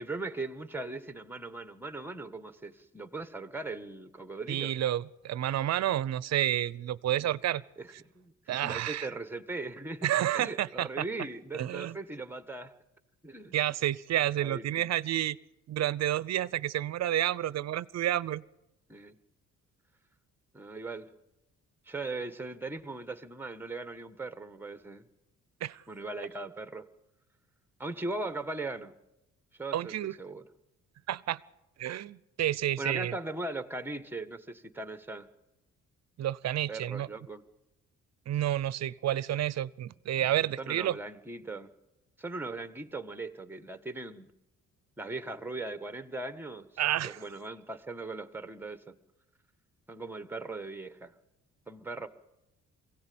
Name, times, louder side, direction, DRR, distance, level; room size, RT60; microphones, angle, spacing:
voice 1, 0.0-4.7 7.8-8.3 8.6-12.7 13.2-13.6 14.4-14.9 18.9-19.2 20.5-21.1 21.8-25.1 25.9-26.9 27.8-28.9 29.5-30.4 32.8-35.3 36.7-37.4 40.6-41.7 42.2-44.3 45.0-46.7 47.0-49.0 49.9-51.1 51.7-52.1, right 2 dB, 5° right, 10 dB, 1.5 m, -39 dB
voice 2, 4.5-7.6 8.5-9.1 10.0-11.0 11.5-12.0 13.5-15.4 15.7-18.4 25.6-25.8 29.7-30.1 31.1-31.4 31.8-33.1 36.2-37.1 38.3-41.0 46.8-47.2, right 12 dB, 60° right, 20 dB, 0.7 m, -30 dB
23.0 x 17.0 x 8.7 m, 0.91 s
cardioid pair, 90°, 30 cm